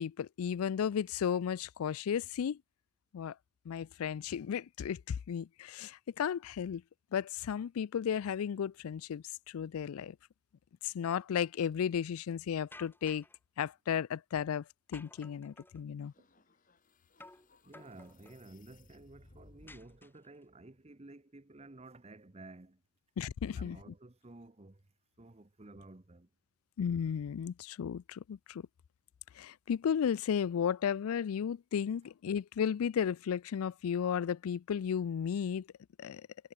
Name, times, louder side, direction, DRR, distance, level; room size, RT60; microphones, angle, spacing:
voice 1, 0.0-2.6 3.1-3.3 3.7-6.8 7.1-10.2 10.8-13.2 13.6-16.1 23.2-23.8 26.8-28.7 29.3-35.7 36.0-36.2, left 8 dB, 85° left, 0.4 m, -34 dB
sound 1, 12.7-13.4 14.9-15.8 17.2-17.5 17.7-18.4 19.7-20.4, left 2 dB, 10° left, 2.0 m, -54 dB
sound 2, 16.0-20.0, left 2 dB, 40° left, 1.8 m, -63 dB
voice 2, 17.6-22.8 23.6-24.9 25.2-26.3, right 2 dB, 30° right, 0.9 m, -53 dB
head